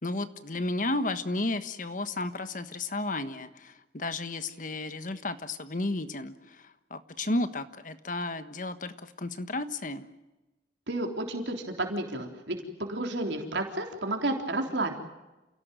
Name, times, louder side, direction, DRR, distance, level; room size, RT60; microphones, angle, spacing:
voice 1, 0.0-10.1, left 2 dB, 45° left, 10 dB, 1.4 m, -33 dB
voice 2, 10.9-15.0, right 2 dB, 80° right, 3 dB, 3.7 m, -31 dB
28.5 x 17.5 x 9.2 m, 1.1 s
head